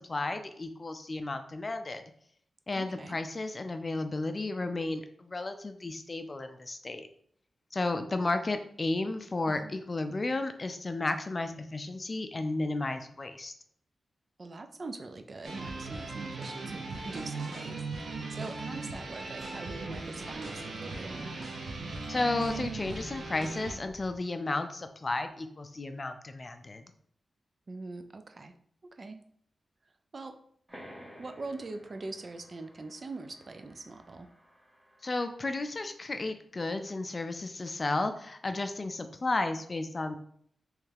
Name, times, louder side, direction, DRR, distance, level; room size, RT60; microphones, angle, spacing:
voice 1, 0.1-2.0 2.7-7.1 7.7-13.5 22.1-26.9 35.0-40.2, left 2 dB, 40° left, 8 dB, 0.4 m, -33 dB
voice 2, 2.8-3.2 9.5-9.7 14.4-21.3 27.7-28.5 28.8-29.2 30.1-30.4 31.2-34.3, right 3 dB, 50° right, 8 dB, 0.4 m, -43 dB
sound 1, 15.4-23.8, right 3 dB, 75° right, 0.7 m, -38 dB
sound 2, 18.6-24.2, left 1 dB, 5° right, 1.0 m, -53 dB
sound 3, 30.7-35.9, equal, 30° right, 1.3 m, -54 dB
3.3 x 3.2 x 3.4 m, 0.65 s
cardioid pair, 75°, 0 cm